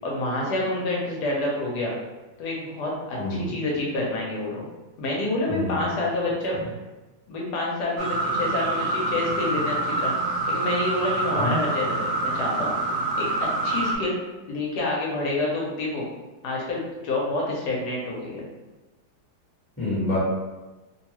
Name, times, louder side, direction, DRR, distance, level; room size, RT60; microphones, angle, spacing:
voice 1, 0.0-2.0 2.4-4.7 5.0-6.6 7.3-10.1 10.5-12.7 13.2-13.3 13.6-14.2 14.5-16.1 16.4-18.4, left 2 dB, 80° left, -3 dB, 1.2 m, -28 dB
voice 2, 3.2-3.5 5.5-5.8 11.3-11.6 19.8-20.2, left 1 dB, 10° left, -10 dB, 1.0 m, -27 dB
sound 1, 8.0-13.9, right 2 dB, 80° right, 1.2 m, -26 dB
3.0 x 2.2 x 2.9 m, 1.2 s
omnidirectional pair, 1.8 m